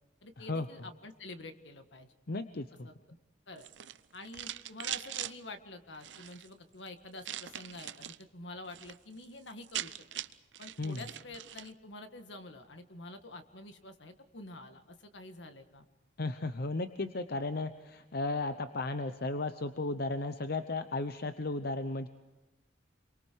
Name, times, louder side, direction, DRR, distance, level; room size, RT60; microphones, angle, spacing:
voice 1, 0.2-2.1 2.8-2.9 3.5-3.7 4.1-9.9 10.6-15.9, left 2 dB, 75° left, 7 dB, 1.8 m, -48 dB
voice 2, 2.3-2.9 10.8-11.0 16.2-22.1, left 2 dB, 60° left, 9 dB, 0.8 m, -35 dB
sound 1, 3.6-5.3 5.9-6.5 7.2-8.2 8.6-9.0 9.2-9.3 9.5-11.7, right 12 dB, 75° right, 0.7 m, -41 dB
29.5 x 23.5 x 4.7 m, 1.1 s
head